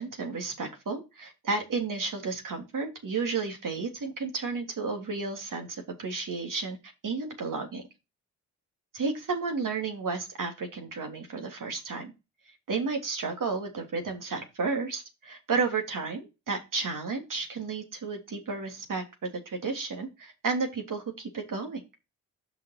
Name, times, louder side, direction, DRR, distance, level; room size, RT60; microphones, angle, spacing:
voice 1, 0.0-6.8 7.0-7.8 8.9-12.1 12.7-19.0 19.4-21.8, right 4 dB, 50° right, 4 dB, 3.2 m, -32 dB
5.9 x 5.8 x 5.9 m, 0.26 s
hypercardioid pair, 45°, 42 cm